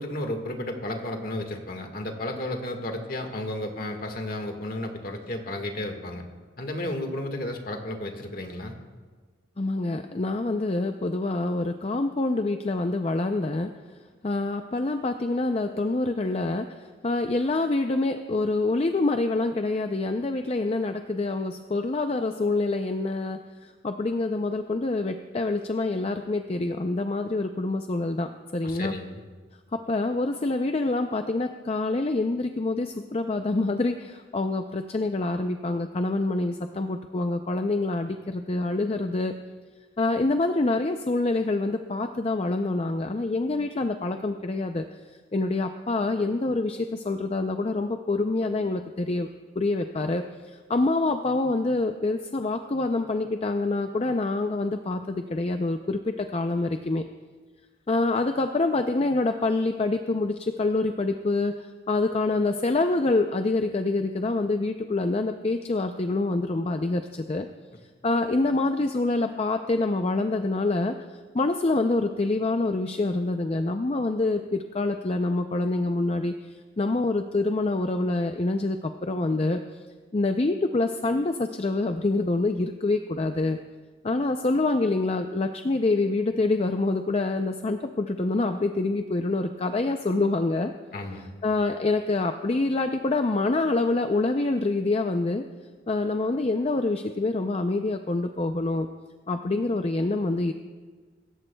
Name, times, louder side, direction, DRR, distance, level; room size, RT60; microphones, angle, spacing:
voice 1, 0.0-6.2 6.6-8.7 28.6-29.2 90.9-91.3, left 1 dB, 50° left, 4 dB, 1.6 m, -33 dB
voice 2, 9.6-13.7 14.2-28.9 29.7-39.3 40.0-44.8 45.3-49.3 49.6-57.0 57.9-61.5 61.9-67.5 68.0-71.0 71.3-76.3 76.8-79.6 80.1-83.6 84.0-90.7 91.4-95.4 95.9-98.9 99.3-100.5, left 2 dB, 35° left, 6 dB, 0.5 m, -26 dB
26.0 x 14.0 x 2.3 m, 1.5 s
head